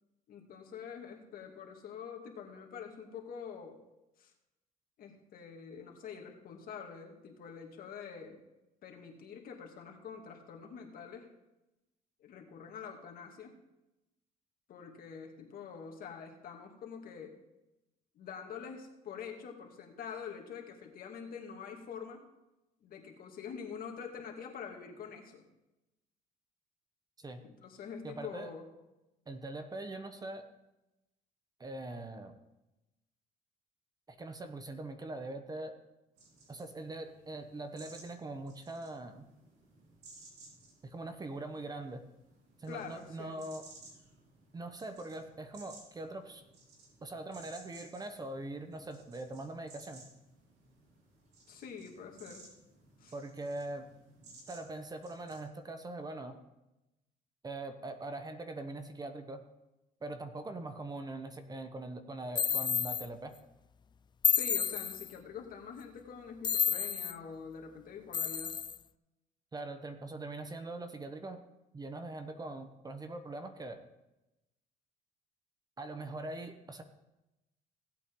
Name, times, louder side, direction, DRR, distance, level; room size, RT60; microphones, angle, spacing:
voice 1, 0.3-3.8 4.2-4.3 5.0-8.4 8.8-11.3 12.2-13.6 14.7-17.4 18.1-22.2 22.8-25.4 27.4-28.7 42.7-43.4 51.5-52.5 53.0-53.1 64.3-68.6, left 6 dB, 60° left, 2 dB, 2.2 m, -46 dB
voice 2, 28.0-28.5 29.3-30.4 31.6-32.3 34.1-35.7 36.5-39.3 40.8-42.0 42.6-43.6 44.5-46.4 47.0-50.0 53.1-53.9 54.5-56.4 57.4-59.4 60.0-63.4 69.5-71.4 71.7-73.8 75.8-76.8, right 2 dB, 25° right, 8 dB, 1.0 m, -42 dB
sound 1, 36.2-55.4, right 2 dB, 80° right, 3.4 m, -58 dB
sound 2, 62.3-63.1 64.2-65.1 66.4-67.1 68.1-68.8, left 7 dB, 25° left, 0.4 m, -30 dB
17.0 x 8.3 x 3.8 m, 0.96 s
cardioid pair, 110°, 17 cm